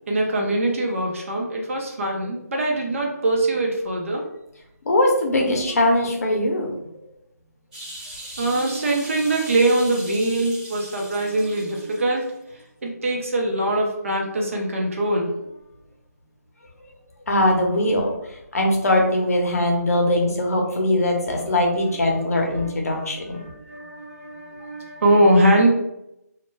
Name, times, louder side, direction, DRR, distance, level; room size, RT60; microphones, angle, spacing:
voice 1, 0.1-4.2 8.4-12.3 12.5-15.3 22.5-25.7, right 1 dB, 50° right, 0 dB, 0.7 m, -22 dB
voice 2, 4.9-6.7 17.3-18.1 18.5-23.4, left 1 dB, 60° left, 1 dB, 0.7 m, -21 dB
sound 1, 7.7-12.3 12.6-12.7, right 1 dB, 25° right, 0.9 m, -39 dB
2.2 x 2.1 x 3.2 m, 0.84 s
figure-of-eight pair, 155°, 9 cm